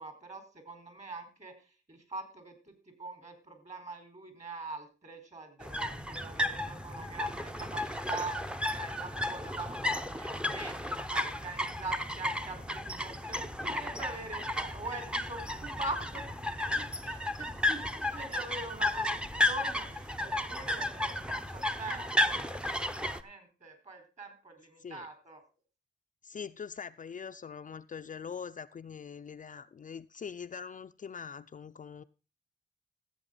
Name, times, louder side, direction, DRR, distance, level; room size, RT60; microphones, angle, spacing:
voice 1, 0.0-8.4 8.7-25.4, right 3 dB, 35° right, 4.0 m, -43 dB
sound 1, 5.6-23.2, left 1 dB, 5° right, 0.8 m, -33 dB
voice 2, 26.2-32.0, left 6 dB, 45° left, 0.5 m, -43 dB
14.5 x 8.0 x 3.9 m
cardioid pair, 95°, 19 cm